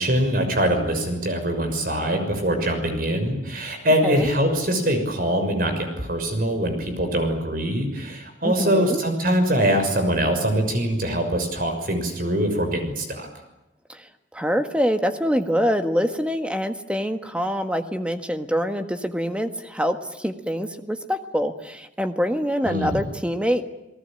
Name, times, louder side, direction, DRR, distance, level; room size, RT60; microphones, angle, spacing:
voice 1, 0.0-13.3 22.6-23.0, right 1 dB, 50° right, 6 dB, 6.3 m, -23 dB
voice 2, 8.4-9.0 13.9-14.1 14.3-23.7, equal, 5° right, 7 dB, 1.6 m, -25 dB
30.0 x 19.0 x 9.0 m, 0.94 s
head